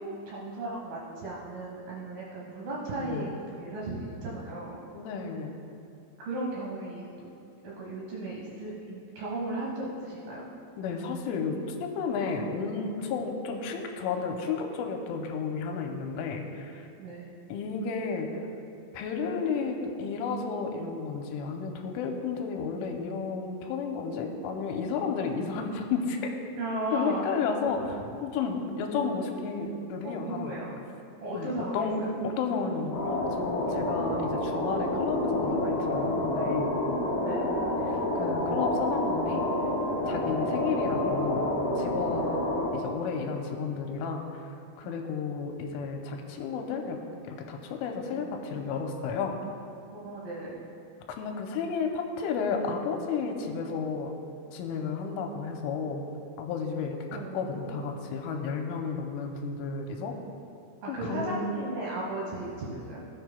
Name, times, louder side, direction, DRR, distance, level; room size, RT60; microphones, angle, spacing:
voice 1, 0.0-4.8 6.2-7.3 7.6-10.5 17.0-17.3 26.6-27.3 30.0-30.7 31.2-32.1 37.1-37.5 44.8-45.0 49.9-50.6 57.1-58.0 60.8-63.0, right 2 dB, 65° right, -5 dB, 2.5 m, -36 dB
voice 2, 3.0-3.3 4.9-5.6 10.8-16.9 17.5-18.4 18.9-26.3 26.9-30.6 31.3-36.7 37.9-39.4 40.0-41.5 41.8-42.3 42.7-44.5 44.8-47.0 47.3-49.4 51.1-54.1 54.5-56.1 56.4-57.0 57.3-60.2 60.9-61.5, left 5 dB, 90° left, 3 dB, 3.2 m, -32 dB
sound 1, 32.9-42.7, left 1 dB, 50° left, 1.6 m, -28 dB
16.5 x 9.3 x 2.2 m, 2.6 s
omnidirectional pair, 5.6 m